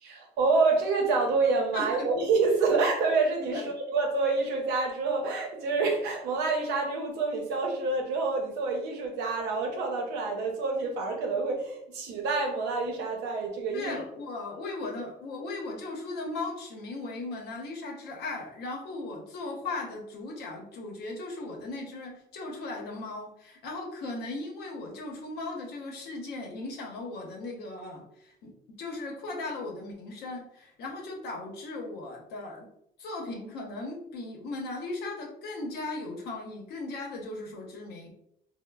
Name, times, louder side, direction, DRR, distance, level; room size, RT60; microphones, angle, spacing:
voice 1, 0.0-14.0, right 4 dB, 90° right, 1 dB, 0.7 m, -27 dB
voice 2, 1.7-2.1 3.5-3.7 13.7-32.7 33.0-38.1, left 2 dB, 70° left, 0 dB, 0.8 m, -37 dB
3.0 x 2.1 x 2.2 m, 0.74 s
cardioid pair, 110°, 17 cm